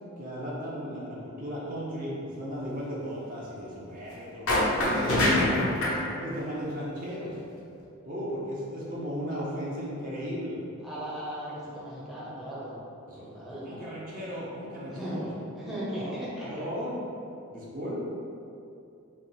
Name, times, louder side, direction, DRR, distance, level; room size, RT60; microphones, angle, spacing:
voice 1, 0.2-5.6 6.1-7.3 8.0-10.6 13.1-15.3 15.9-16.1 16.4-17.0 17.5-18.0, equal, 40° right, -6 dB, 0.7 m, -36 dB
sound 1, 4.5-6.0, left 1 dB, 75° left, 0.8 m, -24 dB
voice 2, 10.8-12.7 13.1-13.7 14.9-16.5, equal, ahead, -10 dB, 0.7 m, -37 dB
3.4 x 2.6 x 4.0 m, 2.6 s
head